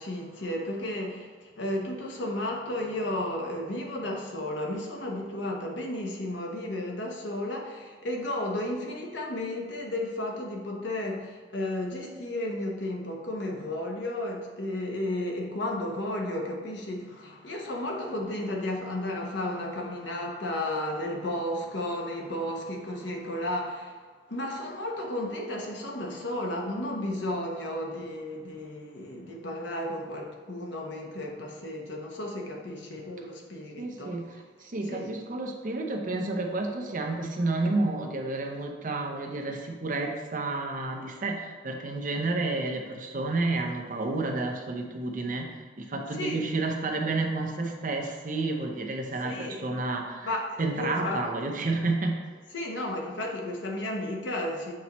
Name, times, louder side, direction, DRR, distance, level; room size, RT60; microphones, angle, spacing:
voice 1, 0.0-24.0 24.3-34.2 34.9-35.1 46.2-46.5 49.2-49.6 50.2-51.2 52.5-54.7, left 1 dB, 90° left, 0 dB, 1.0 m, -33 dB
voice 2, 33.8-50.3 50.6-52.3, right 2 dB, 50° right, 2 dB, 0.7 m, -30 dB
7.5 x 4.1 x 3.1 m, 1.5 s
head